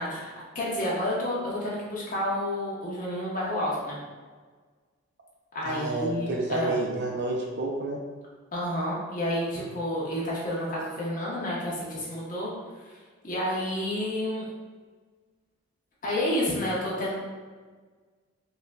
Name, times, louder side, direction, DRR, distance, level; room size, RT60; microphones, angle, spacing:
voice 1, 0.0-4.0 5.5-6.7 8.5-12.5 12.8-12.9 13.2-14.4 16.0-17.2, left 1 dB, 40° left, -6 dB, 1.0 m, -30 dB
voice 2, 5.6-8.0, right 2 dB, 55° right, -1 dB, 0.5 m, -30 dB
5.3 x 2.3 x 2.3 m, 1.4 s
head